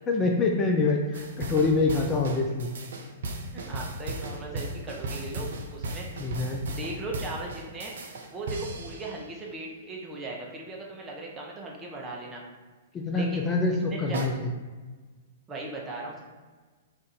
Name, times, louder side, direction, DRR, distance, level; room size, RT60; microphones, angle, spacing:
voice 1, 0.1-2.7 6.2-6.6 12.9-14.5, left 3 dB, 25° left, 1 dB, 0.4 m, -25 dB
sound 1, 1.1-9.3 14.1-14.3, right 2 dB, 70° right, 0.5 m, -36 dB
voice 2, 3.5-6.3 6.7-7.9 8.3-12.4 13.1-13.5 13.9-14.2 15.5-16.2, right 2 dB, 20° right, -2 dB, 0.7 m, -38 dB
2.5 x 2.5 x 4.1 m, 1.3 s
hypercardioid pair, 115°, 0 cm